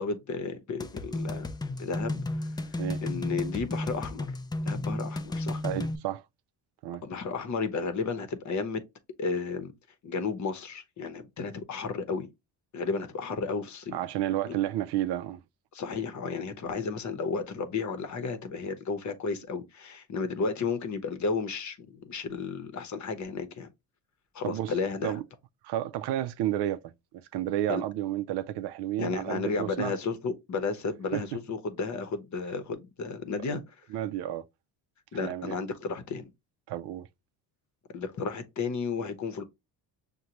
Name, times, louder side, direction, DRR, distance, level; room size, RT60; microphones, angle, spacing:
voice 1, 0.0-1.5 1.8-2.7 3.0-4.3 4.7-5.6 7.0-8.8 9.2-9.7 10.0-12.3 12.7-14.0 14.5-14.6 15.7-23.7 24.3-25.2 27.7-27.8 29.0-33.6 35.1-36.3 37.9-39.4, left 4 dB, 45° left, 0.8 m, -33 dB
sound 1, 0.8-6.0, left 2 dB, 10° left, 0.3 m, -33 dB
voice 2, 5.6-6.2 6.8-7.0 13.9-15.4 24.4-24.7 25.0-25.2 25.6-29.9 31.1-31.2 33.9-34.4 35.1-35.6 36.7-37.1, right 12 dB, 75° right, 0.5 m, -31 dB
6.4 x 2.2 x 2.9 m
cardioid pair, 110°, 41 cm